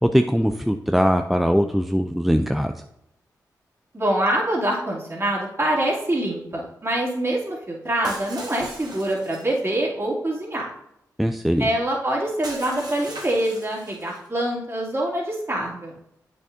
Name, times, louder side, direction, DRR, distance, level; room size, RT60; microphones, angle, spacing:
voice 1, 0.0-2.7 11.2-11.7, equal, ahead, 6 dB, 0.4 m, -21 dB
voice 2, 3.9-10.7 11.6-15.9, right 1 dB, 35° right, -4 dB, 2.7 m, -25 dB
Shatter, 8.0-9.7 12.4-14.3, right 2 dB, 65° right, 1.6 m, -39 dB
8.3 x 6.1 x 2.7 m, 0.81 s
supercardioid pair, 40°, 8 cm